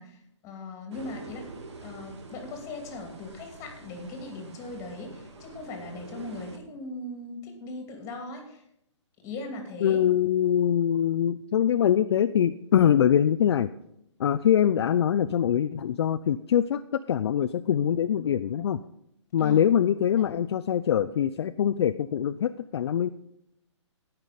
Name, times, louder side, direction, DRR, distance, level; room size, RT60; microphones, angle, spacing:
voice 1, 0.0-1.5 1.8-8.6 9.2-10.0 19.4-19.6, left 2 dB, 20° left, 3 dB, 2.5 m, -39 dB
sound 1, 0.9-6.6, right 3 dB, 60° right, 2.0 m, -45 dB
voice 2, 9.8-13.7 14.2-16.8 17.1-18.8 19.3-23.1, left 9 dB, 55° left, 11 dB, 0.4 m, -23 dB
17.0 x 5.9 x 5.1 m, 0.78 s
hypercardioid pair, 145°, 16 cm